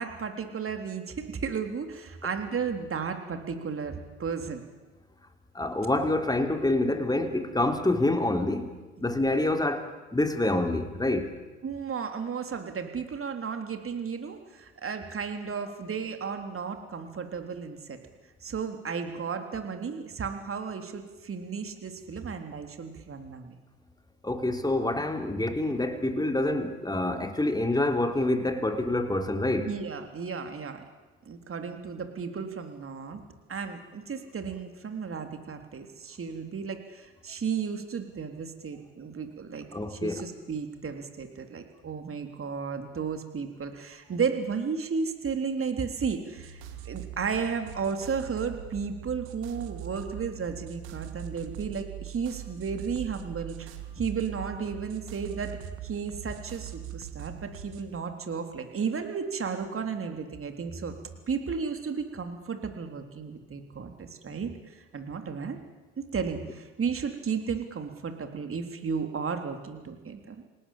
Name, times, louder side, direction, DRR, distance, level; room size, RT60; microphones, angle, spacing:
voice 1, 0.0-4.6 11.6-18.0 18.4-23.5 29.6-30.8 31.3-33.2 33.5-60.9 61.3-65.6 66.0-70.4, right 6 dB, 35° right, 6 dB, 3.7 m, -34 dB
voice 2, 5.6-8.7 9.0-11.3 24.2-29.7 39.7-40.2, left 2 dB, 10° left, 6 dB, 3.4 m, -27 dB
sound 1, 46.4-57.8, right 11 dB, 65° right, 2.3 m, -42 dB
27.5 x 18.0 x 8.7 m, 1.2 s
hypercardioid pair, 65°, 39 cm